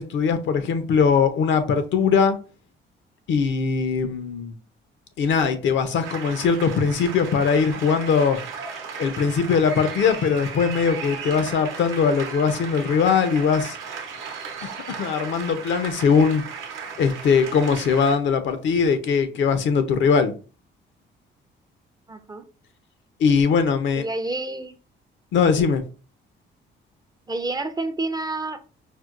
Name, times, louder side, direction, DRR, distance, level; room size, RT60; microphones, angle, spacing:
voice 1, 0.0-2.4 3.3-4.6 5.2-8.4 9.0-13.8 14.6-16.4 17.0-20.3 23.2-24.0 25.3-25.8, left 6 dB, 70° left, 0.6 m, -21 dB
sound 1, 6.0-18.2, right 6 dB, 90° right, 0.8 m, -36 dB
voice 2, 22.1-22.4 24.0-24.7 25.5-25.7 27.3-28.6, right 2 dB, 20° right, 0.4 m, -29 dB
4.3 x 2.1 x 2.4 m
cardioid pair, 90°, 20 cm